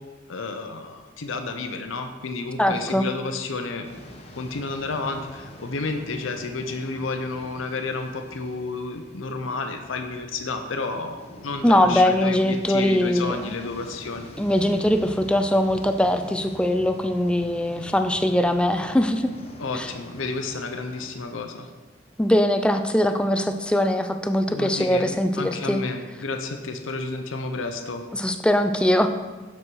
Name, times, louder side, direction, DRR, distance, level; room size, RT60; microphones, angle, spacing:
voice 1, 0.3-3.9 4.4-14.3 19.6-21.7 24.5-25.1 25.4-28.0, left 3 dB, 90° left, 6 dB, 0.7 m, -31 dB
voice 2, 2.6-3.0 11.6-13.7 14.4-19.3 19.7-19.9 22.2-25.8 28.1-29.1, left 1 dB, 5° left, 7 dB, 0.3 m, -21 dB
sound 1, 3.8-21.1, left 1 dB, 30° left, 0.8 m, -45 dB
6.4 x 6.2 x 4.6 m, 1.4 s
head